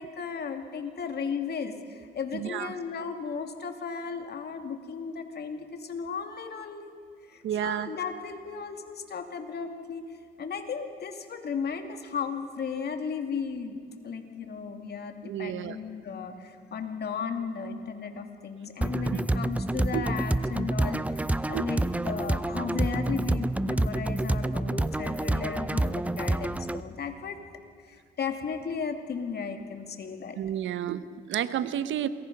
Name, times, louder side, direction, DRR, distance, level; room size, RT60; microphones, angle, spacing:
voice 1, 0.0-6.9 7.3-10.0 10.4-27.4 27.8-30.4, left 6 dB, 55° left, 5 dB, 2.6 m, -35 dB
voice 2, 7.4-7.9 15.2-15.8 19.9-20.1 21.5-21.7 30.4-32.1, right 10 dB, 75° right, 13 dB, 1.0 m, -31 dB
sound 1, 18.8-26.8, right 1 dB, 5° right, 0.6 m, -28 dB
28.0 x 21.5 x 5.4 m, 2.3 s
cardioid pair, 90°, 20 cm